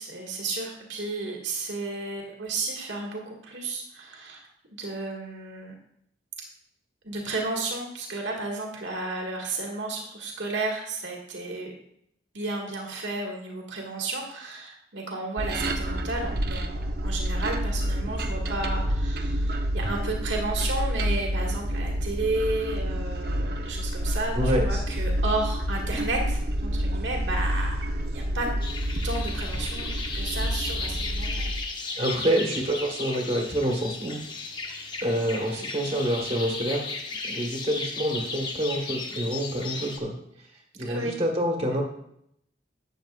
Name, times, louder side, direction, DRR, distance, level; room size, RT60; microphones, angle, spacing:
voice 1, 0.0-4.5 4.8-5.7 7.0-11.7 12.3-28.5 29.0-31.5 40.9-41.1, right 2 dB, 80° right, 0 dB, 1.8 m, -32 dB
sound 1, 15.4-31.7, equal, 55° right, 0.8 m, -28 dB
voice 2, 24.3-24.9 32.0-34.2 35.0-36.8 37.2-41.8, equal, 35° right, 1 dB, 1.4 m, -27 dB
sound 2, 28.6-40.0, left 3 dB, 25° left, 0.9 m, -35 dB
12.5 x 9.0 x 2.4 m, 0.73 s
head